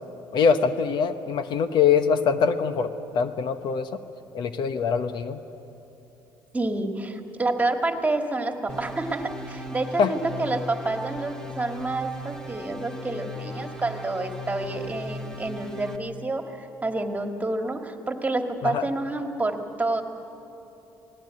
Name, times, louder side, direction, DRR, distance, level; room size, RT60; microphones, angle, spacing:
voice 1, 0.3-2.9 3.1-3.9 4.3-5.4 10.0-10.1 18.6-18.9, left 6 dB, 65° left, 10 dB, 1.0 m, -23 dB
voice 2, 6.5-20.0, right 2 dB, 20° right, 4 dB, 2.0 m, -28 dB
sound 1, 8.7-16.0, equal, 5° left, 1.8 m, -38 dB
19.0 x 16.0 x 9.7 m, 2.9 s
supercardioid pair, 85°, 8 cm